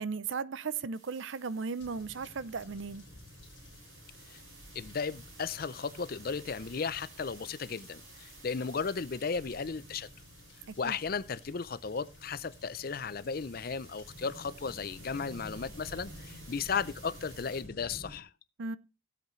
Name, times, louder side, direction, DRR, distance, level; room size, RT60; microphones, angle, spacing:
voice 1, 0.0-3.1 10.8-11.0 18.6-18.8, right 5 dB, 70° right, 0.5 m, -36 dB
sound 1, 0.9-17.6, right 3 dB, 85° right, 6.8 m, -55 dB
sound 2, 1.8-18.2, left 1 dB, 65° left, 3.8 m, -52 dB
voice 2, 4.7-10.1 10.8-18.3, left 5 dB, 45° left, 0.5 m, -35 dB
16.5 x 8.1 x 3.2 m
head